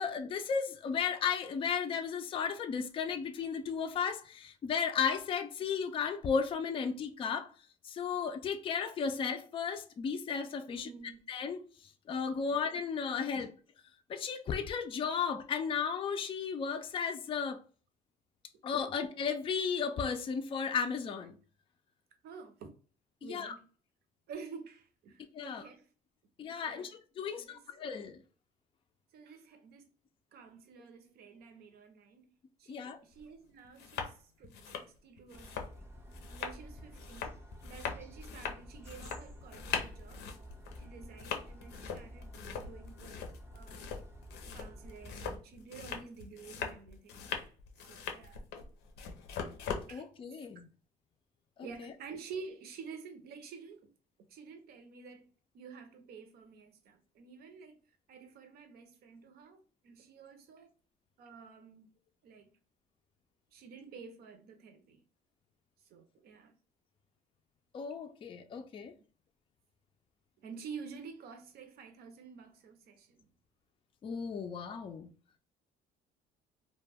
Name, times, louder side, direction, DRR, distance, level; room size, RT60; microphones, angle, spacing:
voice 1, 0.0-7.5 7.8-10.9 11.3-11.6 12.1-13.5 14.1-17.6 18.6-21.4 23.2-23.5 25.3-25.7 26.4-28.2 32.7-33.0 49.9-50.7 67.7-68.9 74.0-75.1, left 6 dB, 30° left, 0.3 m, -34 dB
voice 2, 10.7-11.2 13.3-13.5 22.2-22.7 23.2-23.7 24.3-25.9 26.6-26.9 27.2-27.8 29.1-29.9 30.3-32.3 32.6-35.9 36.3-37.4 37.6-40.2 40.8-44.0 44.5-47.3 47.8-48.5 49.9-50.1 51.6-53.9 54.3-55.3 55.5-57.8 58.1-60.7 61.2-61.9 62.2-62.5 63.5-65.0 65.9-66.6 70.4-73.3, right 5 dB, 65° right, 0.6 m, -50 dB
sound 1, 33.1-33.2 33.6-34.1 34.4-49.9, left 6 dB, 85° left, 0.5 m, -41 dB
sound 2, 35.3-45.4, equal, 15° right, 0.6 m, -51 dB
2.2 x 2.1 x 3.3 m
cardioid pair, 110°, 17 cm